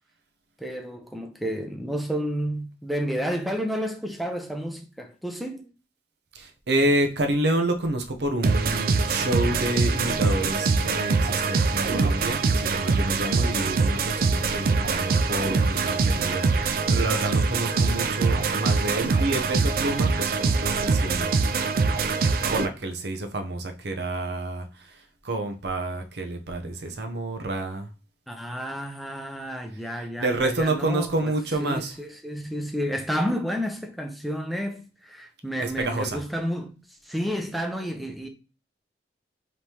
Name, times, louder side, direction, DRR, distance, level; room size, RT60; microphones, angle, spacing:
voice 1, 0.6-5.7 28.3-31.3 31.6-38.3, equal, ahead, 0.5 m, -31 dB
voice 2, 6.3-21.3 22.5-27.9 29.9-32.0 35.6-36.2, right 1 dB, 75° right, 0.7 m, -28 dB
sound 1, 8.4-22.7, right 4 dB, 55° right, 0.4 m, -23 dB
5.2 x 3.1 x 2.9 m
head